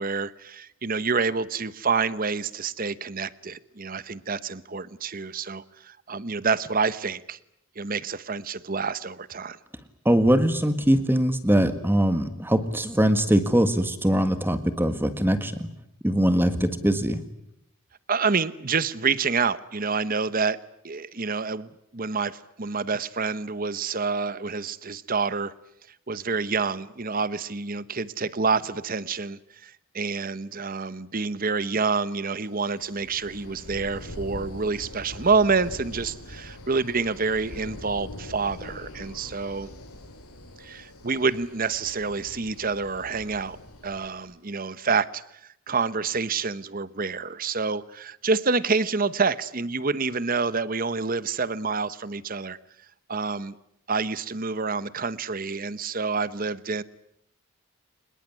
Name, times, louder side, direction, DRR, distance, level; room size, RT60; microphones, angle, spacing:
voice 1, 0.0-7.4 7.8-9.6 18.1-20.6 20.8-25.5 26.1-39.7 40.6-43.6 43.8-52.6 53.1-53.6 53.9-56.8, right 4 dB, 40° right, 16 dB, 1.0 m, -28 dB
voice 2, 10.1-15.7 16.0-17.2, equal, 10° right, 11 dB, 1.7 m, -22 dB
sound 1, 32.5-44.3, left 1 dB, 90° left, 6.2 m, -43 dB
25.5 x 21.5 x 9.7 m, 0.77 s
head